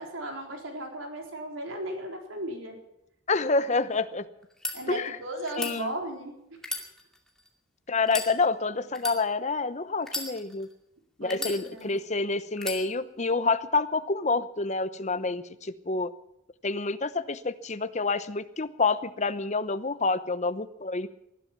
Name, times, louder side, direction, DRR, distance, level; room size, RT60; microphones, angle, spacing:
voice 1, 0.0-2.8 4.7-6.3 11.2-12.0, right 1 dB, 90° right, 3 dB, 3.9 m, -36 dB
voice 2, 3.3-4.2 4.9-5.2 5.6-5.9 7.9-10.7 11.2-16.1 16.6-21.1, left 3 dB, 35° left, 13 dB, 0.8 m, -28 dB
sound 1, 4.4-4.8 5.5-5.7 6.6-7.5 8.0-8.3 8.9-9.2 10.0-10.7 11.3-12.0 12.6-12.8, left 2 dB, 5° left, 2.4 m, -34 dB
19.5 x 12.5 x 6.1 m, 0.81 s
head